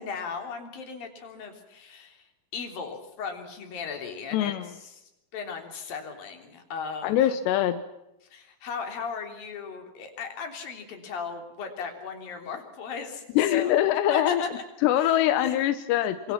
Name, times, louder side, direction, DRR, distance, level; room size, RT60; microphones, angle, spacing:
voice 1, 0.0-2.2 2.5-4.5 4.8-5.0 5.3-7.4 8.3-13.2 13.5-13.7 14.1-14.6 15.0-15.5, left 5 dB, 60° left, 4 dB, 5.1 m, -36 dB
voice 2, 4.3-4.7 7.0-7.8 13.4-14.4 14.8-16.3, left 12 dB, 90° left, 11 dB, 3.2 m, -23 dB
26.0 x 25.5 x 5.8 m, 0.90 s
omnidirectional pair, 4.8 m